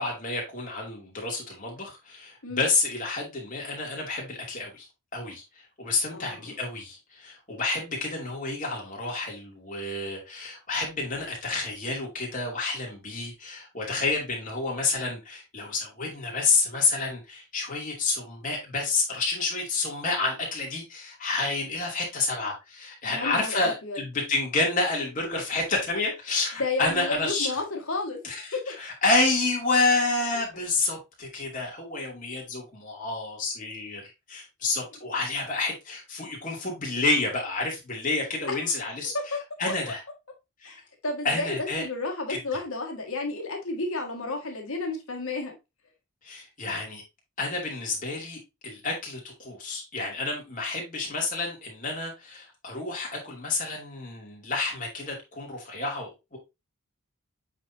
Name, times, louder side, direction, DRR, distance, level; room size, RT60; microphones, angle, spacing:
voice 1, 0.0-4.9 5.1-5.4 5.8-27.5 28.2-34.0 34.3-39.1 39.6-40.0 40.6-40.8 41.2-41.9 42.3-42.6 46.2-47.0 47.4-56.4, left 3 dB, 35° left, -1 dB, 2.6 m, -29 dB
voice 2, 6.1-6.5 23.1-24.0 26.6-28.2 28.5-28.8 38.5-38.6 39.1-39.4 40.6-45.6, left 3 dB, 70° left, 2 dB, 1.9 m, -32 dB
7.9 x 4.3 x 2.7 m, 0.24 s
head